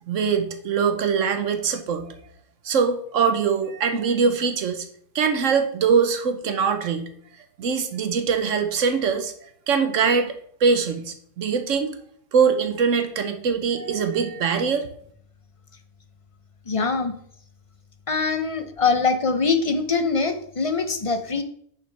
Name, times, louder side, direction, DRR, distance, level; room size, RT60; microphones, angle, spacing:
voice 1, 0.1-2.1 2.6-4.9 5.1-7.1 7.6-10.3 10.6-12.0 12.3-14.9, right 6 dB, 80° right, 8 dB, 1.3 m, -22 dB
voice 2, 16.7-17.1 18.1-21.4, left 4 dB, 35° left, 9 dB, 0.6 m, -23 dB
8.6 x 6.7 x 3.4 m, 0.63 s
omnidirectional pair, 1.3 m